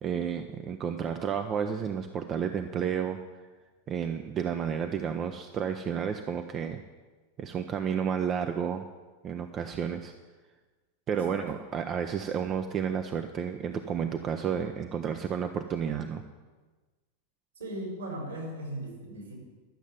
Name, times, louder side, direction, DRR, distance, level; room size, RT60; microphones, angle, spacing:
voice 1, 0.0-3.2 3.9-6.8 7.4-8.8 9.2-10.1 11.1-16.2, right 7 dB, 30° right, 7 dB, 0.7 m, -31 dB
voice 2, 11.1-11.4 17.6-19.3, right 1 dB, 70° right, 0 dB, 4.6 m, -38 dB
11.5 x 7.3 x 9.3 m, 1.3 s
figure-of-eight pair, 90°, 0 cm